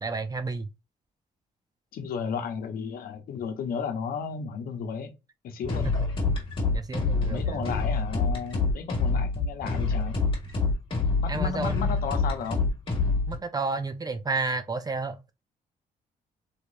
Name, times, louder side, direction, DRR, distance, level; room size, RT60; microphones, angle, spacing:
voice 1, 0.0-0.7 5.8-5.9 6.3-6.4 6.7-7.6 11.3-12.0 13.3-15.3, right 3 dB, 25° right, 0.5 m, -31 dB
voice 2, 1.9-5.1 5.4-5.9 7.3-10.2 11.2-12.7, left 6 dB, 70° left, 0.8 m, -33 dB
sound 1, 5.6-13.3, left 4 dB, 35° left, 1.6 m, -26 dB
3.2 x 3.0 x 2.6 m
cardioid pair, 80°, 16 cm